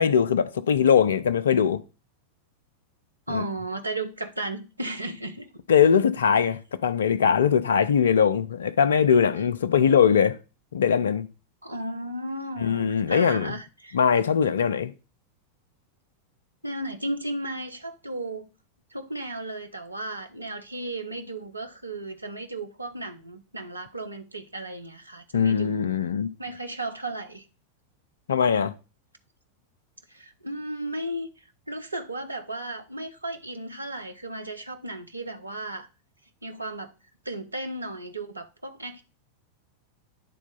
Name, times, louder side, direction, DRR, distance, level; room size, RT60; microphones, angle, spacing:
voice 1, 0.0-1.8 3.3-3.4 5.7-10.4 10.7-11.3 12.6-13.5 13.9-14.9 25.3-26.3 28.3-28.7, left 7 dB, 65° left, 0.4 m, -21 dB
voice 2, 3.3-5.5 11.6-14.0 16.6-18.5 18.9-25.9 26.4-27.5 30.1-35.9 36.4-36.9 37.2-39.0, right 1 dB, 80° right, 0.7 m, -35 dB
10.0 x 3.6 x 3.9 m
figure-of-eight pair, 90°, 0 cm